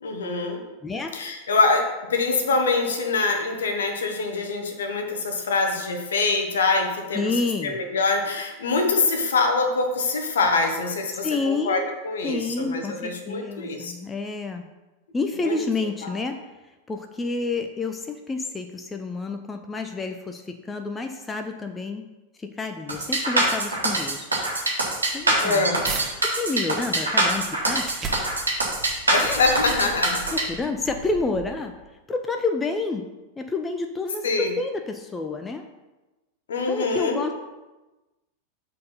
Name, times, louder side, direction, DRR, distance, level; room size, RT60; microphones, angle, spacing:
voice 1, 0.0-0.6 1.1-7.3 7.6-13.9 15.4-15.5 16.0-16.1 25.4-25.8 29.1-30.3 34.2-34.5 36.5-37.2, left 3 dB, 65° left, 4 dB, 1.1 m, -24 dB
voice 2, 0.8-1.2 7.1-7.8 11.2-12.0 12.2-14.7 15.1-16.4 16.6-22.1 22.4-24.3 25.1-25.7 26.1-28.1 29.2-29.4 30.3-31.7 32.1-33.0 33.4-35.7 36.7-37.3, left 3 dB, 15° left, 5 dB, 0.5 m, -29 dB
sound 1, 22.9-30.4, right 2 dB, 80° right, 1.6 m, -23 dB
sound 2, 25.1-26.1 26.6-31.9, right 4 dB, 25° right, 1.5 m, -38 dB
6.6 x 4.3 x 5.4 m, 1.1 s
figure-of-eight pair, 90°, 0 cm